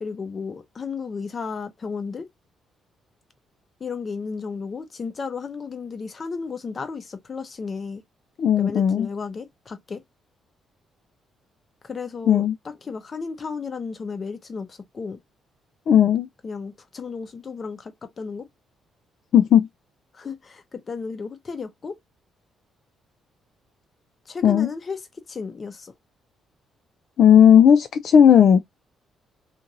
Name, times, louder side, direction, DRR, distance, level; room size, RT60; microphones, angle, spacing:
voice 1, 0.0-2.3 3.8-8.0 8.6-10.0 11.8-15.2 16.4-18.5 20.1-21.9 24.3-25.0 25.3-25.9, left 5 dB, 40° left, 0.7 m, -33 dB
voice 2, 8.4-9.1 12.3-12.5 15.9-16.3 19.3-19.7 24.4-24.7 27.2-28.6, left 8 dB, 65° left, 0.3 m, -15 dB
3.0 x 2.5 x 2.5 m
cardioid pair, 90°, 0 cm